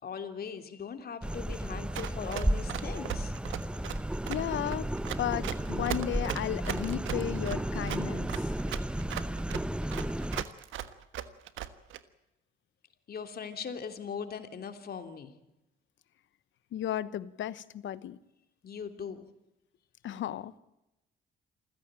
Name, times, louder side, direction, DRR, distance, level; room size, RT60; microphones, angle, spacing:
voice 1, 0.0-3.3 13.1-15.3 18.6-19.2, left 6 dB, 50° left, 3.0 m, -40 dB
sound 1, 1.2-10.4, right 1 dB, 5° right, 0.8 m, -33 dB
Run, 1.9-12.0, right 11 dB, 80° right, 1.4 m, -38 dB
voice 2, 4.3-4.9 5.2-8.5 16.7-18.2 20.0-20.6, left 12 dB, 75° left, 1.1 m, -34 dB
27.5 x 15.5 x 8.9 m
cardioid pair, 90°, 20 cm